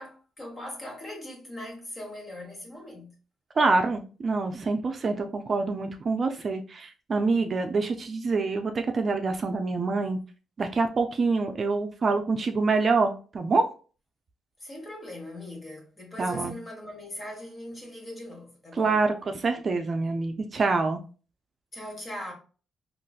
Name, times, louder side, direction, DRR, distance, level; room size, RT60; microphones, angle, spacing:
voice 1, 0.0-3.1 14.6-19.0 21.7-22.3, left 1 dB, 30° left, 1.3 m, -40 dB
voice 2, 3.6-10.2 10.6-13.7 16.2-16.6 18.7-19.1 19.4-21.0, right 3 dB, 40° right, 0.4 m, -26 dB
3.8 x 2.4 x 2.3 m
cardioid pair, 90°, 0 cm